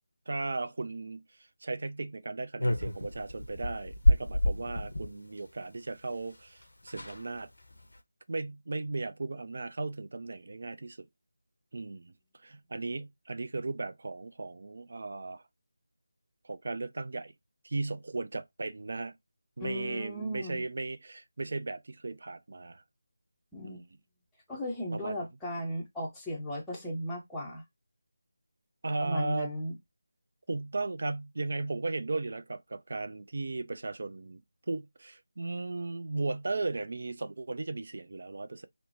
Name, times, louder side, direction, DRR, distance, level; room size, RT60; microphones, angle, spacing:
voice 1, 0.3-1.2 1.6-7.5 8.3-11.1 11.7-12.1 12.4-15.4 16.4-17.3 17.6-19.1 19.6-22.8 23.6-24.0 24.9-25.3 28.8-29.6 30.5-34.4 34.7-38.7, right 3 dB, 45° right, 0.3 m, -36 dB
sound 1, 2.6-5.1 6.3-6.4 6.6-6.7 6.9-7.2 7.7-8.0, left 1 dB, 60° left, 0.6 m, -28 dB
voice 2, 19.6-20.6 23.5-23.8 24.5-27.6 29.0-29.7, equal, 5° left, 0.6 m, -36 dB
3.0 x 2.0 x 2.5 m
figure-of-eight pair, 160°, 0 cm